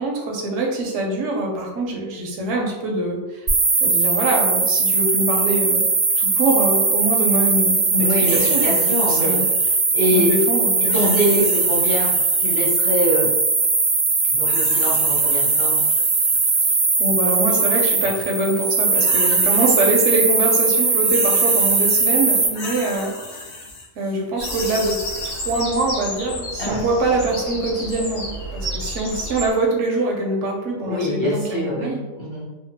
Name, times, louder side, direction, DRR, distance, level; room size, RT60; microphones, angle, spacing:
voice 1, 0.0-3.5 3.8-5.8 6.2-9.4 10.1-11.2 17.0-23.4 24.0-25.0 25.2-32.0, right 2 dB, 75° right, 0 dB, 0.9 m, -24 dB
sound 1, 3.5-22.5, right 4 dB, 55° right, 0.4 m, -19 dB
voice 2, 8.0-10.3 10.8-13.4 14.3-15.8 26.6-26.9 30.8-32.5, equal, 30° left, -8 dB, 0.6 m, -24 dB
sound 2, 8.2-9.8 10.8-12.7 14.2-16.6 17.3-17.6 18.6-20.2 20.5-25.6, left 3 dB, 70° left, 0.8 m, -35 dB
Bird vocalization bird call bird song, 24.4-29.5, equal, 90° left, 1.1 m, -31 dB
2.8 x 2.3 x 2.7 m, 1.1 s
omnidirectional pair, 1.3 m